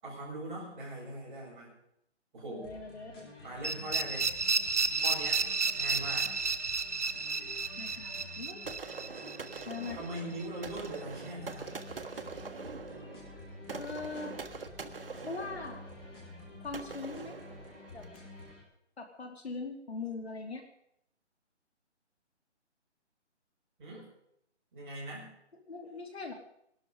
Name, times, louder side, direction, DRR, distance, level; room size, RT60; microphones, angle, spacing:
voice 1, 0.0-1.7 2.3-2.7 3.4-4.3 5.0-5.4 5.7-6.3 9.9-11.8 23.8-24.1 24.7-25.3, right 2 dB, 10° right, -8 dB, 5.9 m, -41 dB
voice 2, 2.5-3.3 7.8-8.8 9.7-10.0 13.7-14.4 15.3-15.8 16.6-17.4 17.9-18.1 19.0-20.6 25.6-26.3, left 4 dB, 60° left, 4 dB, 2.8 m, -41 dB
sound 1, 2.6-18.6, left 2 dB, 20° left, 4.5 m, -50 dB
sound 2, 3.6-10.4, right 4 dB, 75° right, 1.2 m, -32 dB
sound 3, 8.7-18.3, right 4 dB, 50° right, 1.4 m, -44 dB
20.0 x 12.5 x 5.2 m, 0.74 s
hypercardioid pair, 170°, 35 cm